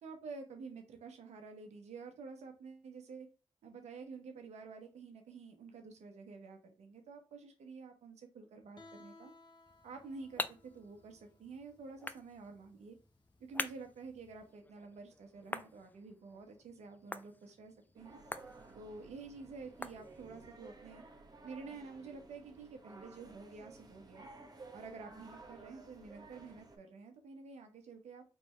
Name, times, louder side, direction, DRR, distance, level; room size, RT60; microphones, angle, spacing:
voice 1, 0.0-3.3 3.6-9.3 9.8-13.0 13.4-18.2 18.7-21.0 21.4-24.3 24.7-28.2, right 4 dB, 80° right, 4 dB, 1.1 m, -50 dB
Guitar, 8.8-14.5, left 2 dB, 40° left, 1.0 m, -61 dB
sound 1, 9.7-20.5, left 2 dB, 15° left, 0.5 m, -47 dB
sound 2, 18.0-26.8, right 3 dB, 35° right, 1.2 m, -55 dB
4.4 x 3.3 x 3.1 m, 0.33 s
supercardioid pair, 45°, 11 cm